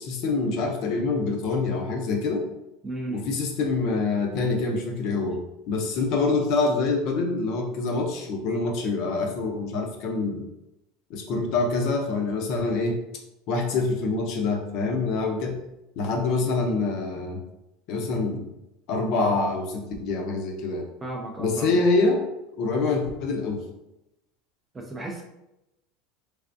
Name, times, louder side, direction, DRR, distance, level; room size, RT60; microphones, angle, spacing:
voice 1, 0.0-2.4 3.1-10.5 11.1-13.0 13.5-15.6 16.0-17.4 17.9-18.4 18.9-20.9 21.4-22.2 22.5-23.6, left 3 dB, 40° left, 3 dB, 0.6 m, -25 dB
voice 2, 2.8-3.3 21.0-21.7 24.7-25.2, right 2 dB, 10° right, 1 dB, 0.4 m, -34 dB
3.4 x 3.3 x 2.6 m, 0.91 s
supercardioid pair, 175°, 0 cm